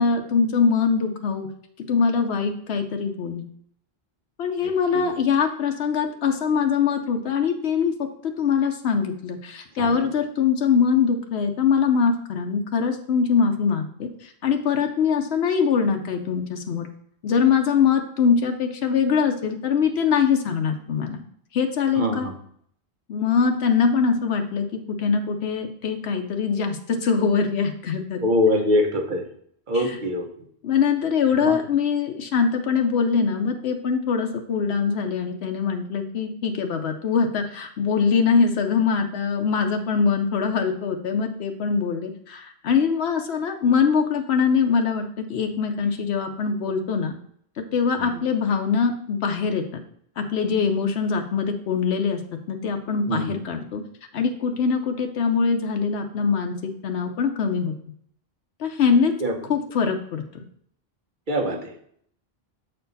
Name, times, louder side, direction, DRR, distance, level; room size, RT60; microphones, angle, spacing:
voice 1, 0.0-1.5 1.9-3.4 4.4-16.9 17.2-21.2 21.5-22.3 23.1-28.2 29.7-30.0 30.6-47.1 47.7-49.8 50.2-52.2 52.5-53.8 54.1-57.7 58.6-59.1 59.5-60.2, left 6 dB, 90° left, 4 dB, 1.0 m, -23 dB
voice 2, 4.6-5.1 9.8-10.0 22.0-22.3 28.2-29.3 29.7-30.2 31.4-31.6 48.0-48.2 53.1-53.4 59.2-59.3 61.3-61.9, left 1 dB, 50° right, 4 dB, 1.1 m, -24 dB
7.5 x 4.5 x 3.9 m, 0.65 s
omnidirectional pair, 1.0 m